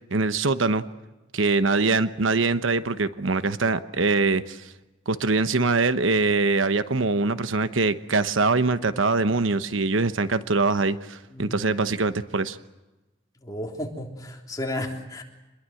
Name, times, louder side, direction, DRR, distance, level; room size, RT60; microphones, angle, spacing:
voice 1, 0.1-0.8 1.3-4.6 5.1-12.6, right 3 dB, 85° right, 12 dB, 1.0 m, -23 dB
voice 2, 13.4-15.2, left 1 dB, 20° left, 1 dB, 3.5 m, -33 dB
27.0 x 21.5 x 7.8 m, 1.1 s
head